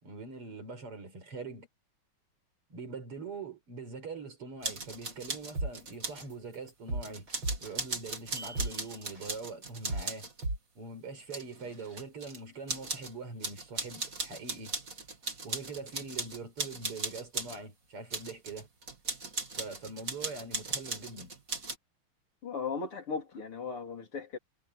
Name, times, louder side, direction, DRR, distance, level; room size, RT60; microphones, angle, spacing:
voice 1, 0.0-1.7 2.7-7.3 7.6-10.3 10.8-14.7 15.4-18.7 19.6-21.3, right 3 dB, 90° right, 5.8 m, -43 dB
sound 1, 4.6-6.3 7.0-10.4 11.2-12.4 12.7-13.1 13.4-17.6 18.1-21.8, right 3 dB, 35° right, 3.3 m, -38 dB
sound 2, 5.5-5.7 6.1-6.3 6.7-7.8 8.2-8.3 8.5-8.7 9.1-9.3 9.7-10.1 10.4-10.6, right 2 dB, 60° right, 8.5 m, -33 dB
voice 2, 22.4-24.4, left 5 dB, 75° left, 4.7 m, -37 dB
omnidirectional pair, 2.4 m